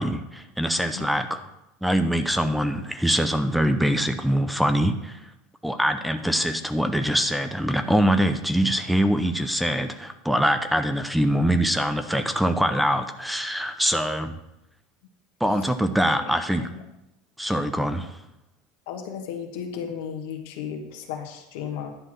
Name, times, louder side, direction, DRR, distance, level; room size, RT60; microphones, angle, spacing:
voice 1, 0.0-1.4 1.8-5.2 5.6-14.4 15.4-16.7 17.4-18.2, equal, ahead, 9 dB, 0.7 m, -23 dB
voice 2, 18.9-21.9, left 8 dB, 70° left, 3 dB, 1.8 m, -34 dB
11.0 x 4.6 x 7.6 m, 0.89 s
hypercardioid pair, 90°, 0 cm